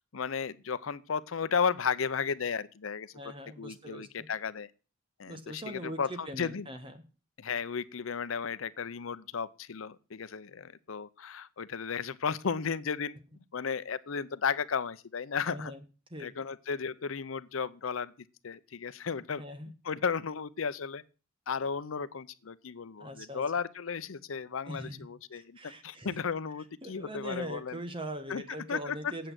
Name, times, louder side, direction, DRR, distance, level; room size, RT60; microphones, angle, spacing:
voice 1, 0.1-4.7 5.2-6.7 7.4-13.1 13.5-15.7 16.2-18.1 18.4-19.4 19.8-21.0 21.5-25.6 25.8-27.8 28.3-28.4 28.7-29.0, left 6 dB, 80° left, 0.6 m, -34 dB
voice 2, 3.1-4.3 5.3-7.0 15.5-15.8 16.1-16.3 19.4-19.7 23.0-23.4 24.7-25.1 25.3-26.2 26.8-29.3, right 1 dB, 25° right, 1.4 m, -41 dB
8.4 x 7.8 x 7.5 m
head